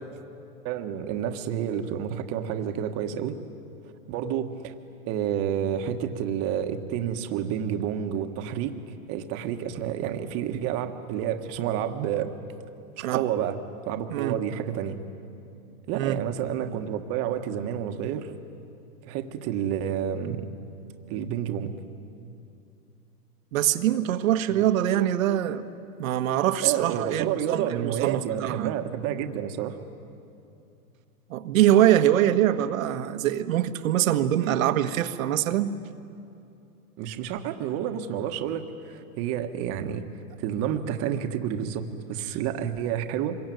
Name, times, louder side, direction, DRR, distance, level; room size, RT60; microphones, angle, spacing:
voice 1, 0.6-3.4 4.1-4.7 5.1-8.8 9.1-12.3 13.0-13.6 13.9-15.0 15.9-18.3 19.0-20.5 21.1-21.7 26.6-29.8 37.0-40.0 40.4-43.4, right 9 dB, 30° right, 7 dB, 1.5 m, -29 dB
voice 2, 23.5-25.7 26.0-28.7 31.3-35.7, right 12 dB, 60° right, 10 dB, 1.4 m, -23 dB
26.0 x 22.0 x 9.3 m, 2.6 s
hypercardioid pair, 145°, 47 cm